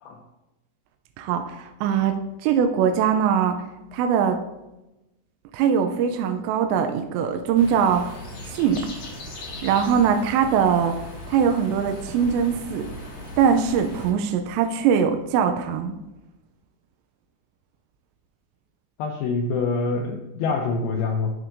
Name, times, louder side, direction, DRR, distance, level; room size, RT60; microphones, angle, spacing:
voice 1, 1.2-3.6 3.9-4.4 5.5-8.2 8.5-8.8 9.6-12.9 13.4-15.9, right 7 dB, 85° right, 5 dB, 2.8 m, -22 dB
sound 1, 7.5-14.1, left 1 dB, 55° left, 1.9 m, -38 dB
voice 2, 19.0-21.3, left 4 dB, 90° left, 1 dB, 2.1 m, -25 dB
12.0 x 4.6 x 2.6 m, 0.96 s
omnidirectional pair, 5.1 m